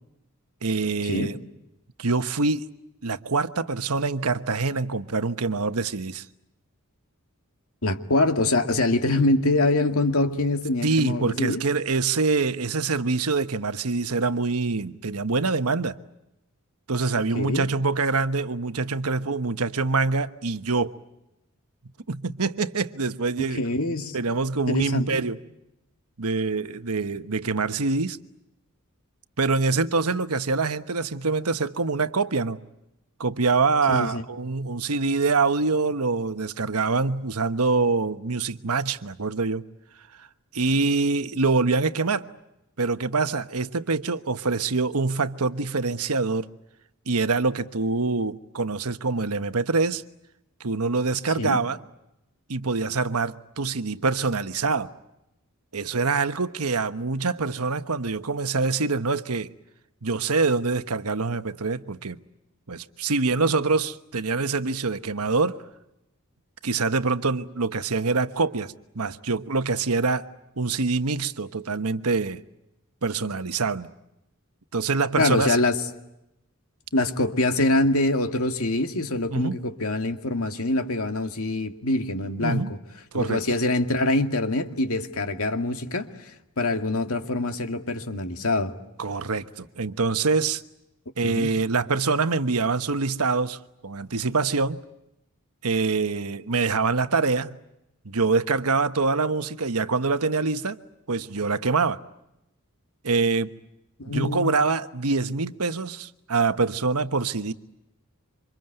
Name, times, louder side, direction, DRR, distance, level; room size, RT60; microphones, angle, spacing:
voice 1, 0.6-1.4 2.0-2.7 3.0-6.2 10.8-16.0 16.9-21.0 22.1-23.6 24.1-25.4 26.2-28.2 29.4-32.6 33.2-39.6 40.5-42.3 42.8-46.5 47.1-50.0 50.6-51.8 52.5-54.9 55.7-59.5 60.0-62.2 62.7-65.6 66.6-70.3 70.6-72.4 73.0-73.9 74.7-75.6 79.3-79.6 82.4-82.7 83.1-83.4 89.0-90.6 91.2-94.8 95.6-97.6 98.0-100.8 101.1-102.0 103.0-103.5 104.1-107.5, right 4 dB, 80° right, 1.2 m, -25 dB
voice 2, 7.8-11.6 17.3-17.7 23.4-24.2 24.7-25.2 33.9-34.2 51.4-51.6 75.2-75.8 76.9-82.8 83.1-86.3 86.6-88.7 91.2-91.5 104.0-104.6, left 2 dB, 70° left, 2.2 m, -24 dB
28.0 x 26.5 x 7.9 m
head